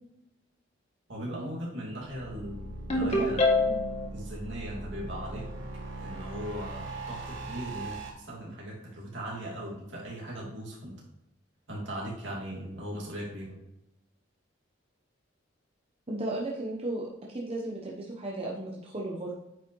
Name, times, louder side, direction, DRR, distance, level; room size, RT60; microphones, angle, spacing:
voice 1, 1.1-3.4 4.1-5.5 6.0-11.0 11.7-13.6, right 1 dB, 65° right, -4 dB, 2.4 m, -38 dB
sound 1, 2.0-8.1, right 2 dB, 90° right, 1.7 m, -40 dB
Ringtone, 2.9-4.1, left 2 dB, 35° left, 1.6 m, -25 dB
voice 2, 16.1-19.3, right 2 dB, 30° right, -3 dB, 1.0 m, -35 dB
9.0 x 5.1 x 3.1 m, 0.88 s
head